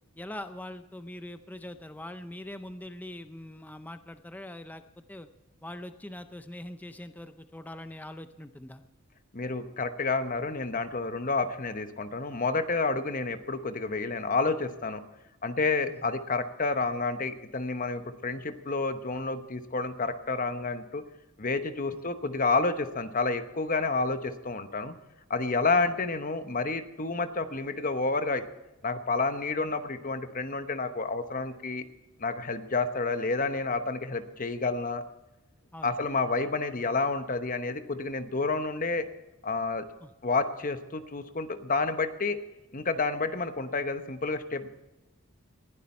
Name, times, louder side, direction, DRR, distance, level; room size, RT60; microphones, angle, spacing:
voice 1, 0.2-4.8 5.1-5.3 5.6-8.8 15.9-16.0 21.9-22.0 35.7-35.9 40.0-40.1, left 1 dB, 10° left, 10 dB, 0.5 m, -42 dB
voice 2, 9.3-15.0 15.4-21.0 21.4-24.9 25.3-28.4 28.8-31.8 32.2-35.0 35.8-39.1 39.4-39.8 40.2-42.4 42.7-44.7, left 3 dB, 40° left, 10 dB, 1.0 m, -29 dB
20.0 x 11.5 x 4.3 m, 1.0 s
head